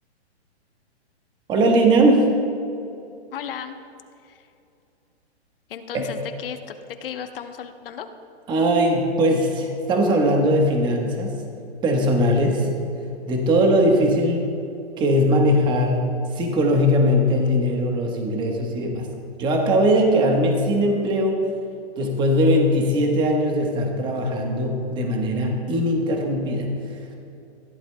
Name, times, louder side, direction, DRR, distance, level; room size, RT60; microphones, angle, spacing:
voice 1, 1.5-2.3 5.9-6.1 8.5-11.4 11.8-12.7 13.3-14.5 15.0-16.0 16.3-19.1 19.4-21.4 22.0-26.7, equal, 15° right, 2 dB, 1.1 m, -20 dB
voice 2, 3.3-3.7 4.2-4.4 5.7-6.7 7.0-8.1, left 8 dB, 55° left, 8 dB, 1.0 m, -34 dB
20.5 x 14.5 x 2.2 m, 2.6 s
hypercardioid pair, 155°, 33 cm